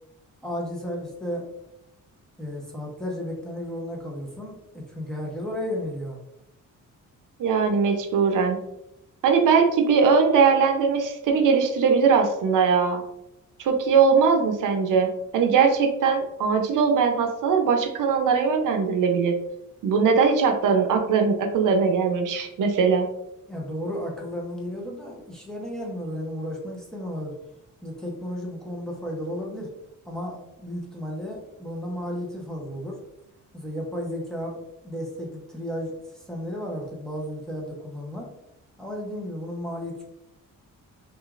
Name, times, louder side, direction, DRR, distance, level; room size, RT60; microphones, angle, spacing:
voice 1, 0.4-1.5 2.4-6.2 23.5-27.4 27.8-29.7 30.1-33.0 33.5-34.6 34.8-38.3 38.8-40.0, equal, ahead, -3 dB, 0.7 m, -33 dB
voice 2, 7.4-8.6 9.2-13.0 13.6-15.1 15.3-19.4 19.8-23.1, right 5 dB, 70° right, 4 dB, 0.6 m, -20 dB
6.1 x 2.4 x 2.4 m, 0.86 s
wide cardioid pair, 165°, 32 cm